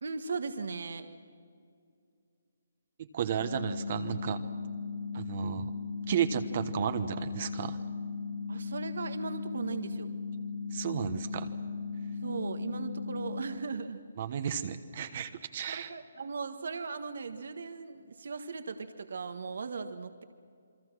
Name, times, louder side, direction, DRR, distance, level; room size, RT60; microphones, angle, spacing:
voice 1, 0.0-1.1 8.5-10.1 12.2-14.0 15.7-20.2, right 4 dB, 65° right, 8 dB, 1.5 m, -38 dB
voice 2, 3.0-4.4 5.1-5.7 6.1-7.8 10.7-11.5 14.2-15.9, right 9 dB, 40° right, 9 dB, 1.2 m, -33 dB
sound 1, 3.4-13.4, left 4 dB, 75° left, 3.0 m, -37 dB
28.5 x 23.0 x 6.2 m, 2.3 s
hypercardioid pair, 160°, 0 cm